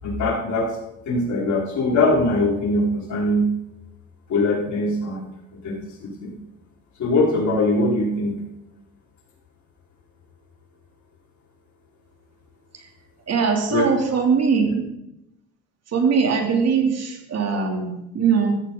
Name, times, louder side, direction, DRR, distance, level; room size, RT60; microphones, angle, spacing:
voice 1, 0.0-0.7 1.1-3.5 4.3-5.3 5.6-6.3 7.0-8.4 13.7-13.9, left 2 dB, 70° left, -3 dB, 4.6 m, -22 dB
voice 2, 13.3-14.9 15.9-18.6, right 5 dB, 55° right, 3 dB, 2.9 m, -21 dB
14.5 x 14.5 x 3.9 m, 0.87 s
cardioid pair, 90°, 30 cm